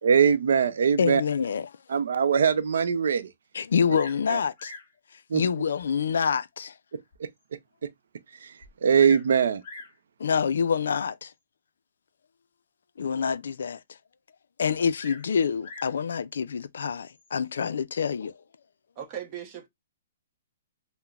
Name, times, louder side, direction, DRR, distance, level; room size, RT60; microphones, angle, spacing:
voice 1, 0.0-1.2 1.9-3.3 4.3-4.4 5.3-5.4 7.2-7.3 8.4-8.5 8.8-9.6, right 7 dB, 70° right, 0.5 m, -21 dB
voice 2, 1.0-1.7 3.5-4.7 5.3-6.7 10.2-11.3 13.0-13.8 14.6-18.3, left 6 dB, 80° left, 0.3 m, -26 dB
Bird vocalization bird call bird song, 3.9-4.3 4.6-5.0 5.8-5.9 6.5-6.6 7.1-7.2 7.4-7.5 8.6-9.3 9.6-10.0 11.0-11.3 14.9-16.0 17.1-17.5, left 3 dB, 30° left, 1.4 m, -44 dB
voice 3, 19.0-19.7, right 9 dB, 25° right, 0.7 m, -37 dB
5.6 x 2.1 x 2.3 m
hypercardioid pair, 170°, 0 cm